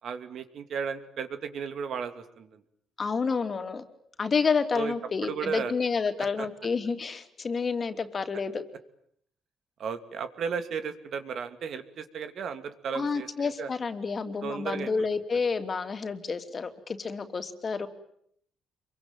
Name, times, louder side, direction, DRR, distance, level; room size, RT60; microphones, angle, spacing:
voice 1, 0.0-2.6 4.7-4.9 5.2-5.7 6.2-6.5 9.8-13.7 14.4-14.9, right 6 dB, 65° right, 9 dB, 2.7 m, -34 dB
voice 2, 3.0-3.8 4.2-8.6 12.9-17.9, left 5 dB, 40° left, 8 dB, 3.0 m, -29 dB
27.0 x 23.5 x 9.1 m, 0.70 s
cardioid pair, 90°, 0 cm